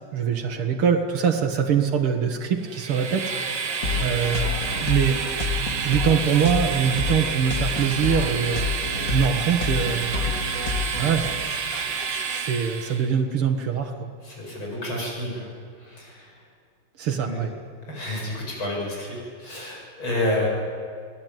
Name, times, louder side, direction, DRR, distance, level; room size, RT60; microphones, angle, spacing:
voice 1, 0.0-3.6 4.0-4.5 4.8-5.2 5.6-8.7 9.1-10.2 11.0-11.5 12.3-14.1 17.0-17.5, right 7 dB, 85° right, 2 dB, 2.4 m, -24 dB
Train, 2.6-13.1, right 6 dB, 55° right, 1.9 m, -29 dB
sound 1, 3.8-12.2, left 4 dB, 40° left, 2.8 m, -29 dB
voice 2, 14.3-15.5 15.8-16.3 17.2-17.4 17.9-20.5, left 1 dB, 70° left, -2 dB, 8.7 m, -29 dB
28.5 x 19.0 x 9.3 m, 2.2 s
omnidirectional pair, 2.3 m